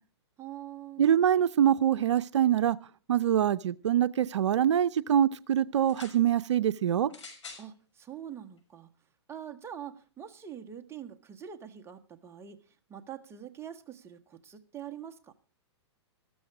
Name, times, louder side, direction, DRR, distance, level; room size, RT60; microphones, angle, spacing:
voice 1, 0.4-1.1 7.6-8.9 9.3-15.3, right 9 dB, 15° right, 6 dB, 1.5 m, -44 dB
voice 2, 1.0-2.8 3.1-7.1, right 10 dB, 80° right, 14 dB, 0.6 m, -24 dB
sound 1, 5.8-6.2 7.1-7.7 8.6-8.7, left 4 dB, 85° left, 6.1 m, -47 dB
14.0 x 13.5 x 4.9 m, 0.38 s
hypercardioid pair, 125°, 15 cm